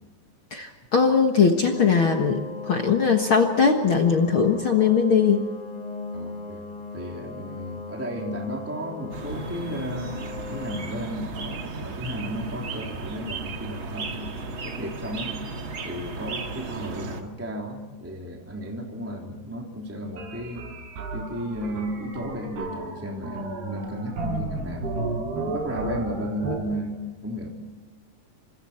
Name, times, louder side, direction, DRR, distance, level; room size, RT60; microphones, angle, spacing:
voice 1, 0.5-5.5, left 6 dB, 70° left, 3 dB, 1.2 m, -20 dB
sound 1, 1.6-10.8, left 3 dB, 50° left, 7.4 m, -37 dB
voice 2, 6.1-6.6 6.9-10.1 10.5-15.3 15.8-20.6 21.1-24.9 25.5-27.5, equal, 5° right, 0 dB, 2.5 m, -34 dB
sound 2, 9.1-17.2, right 3 dB, 40° right, 2.1 m, -35 dB
sound 3, 20.2-26.6, right 2 dB, 80° right, 6.7 m, -33 dB
30.0 x 26.5 x 4.4 m, 1.3 s
omnidirectional pair, 4.7 m